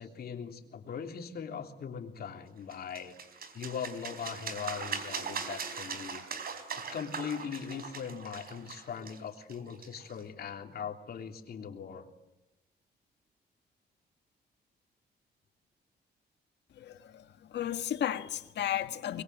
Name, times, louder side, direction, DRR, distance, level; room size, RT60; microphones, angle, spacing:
voice 1, 0.0-3.1 3.5-6.2 6.5-12.1, left 7 dB, 60° left, 3.3 m, -40 dB
sound 1, 2.7-10.2, right 5 dB, 55° right, 4.2 m, -40 dB
voice 2, 16.8-17.2 17.5-19.2, left 10 dB, 75° left, 1.8 m, -33 dB
25.0 x 22.0 x 9.4 m
cardioid pair, 105°, 18 cm